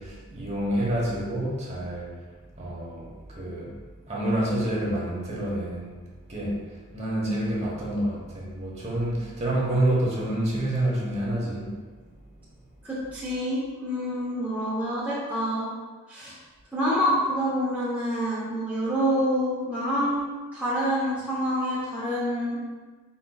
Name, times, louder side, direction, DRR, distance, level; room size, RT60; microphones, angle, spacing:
voice 1, 0.0-2.2 2.5-3.8 4.1-6.0 6.3-11.7, right 1 dB, 30° right, -5 dB, 1.0 m, -28 dB
voice 2, 12.8-15.7 16.1-16.3 16.7-20.2 20.5-22.6, equal, 5° right, -9 dB, 0.8 m, -27 dB
4.4 x 4.2 x 2.3 m, 1.4 s
head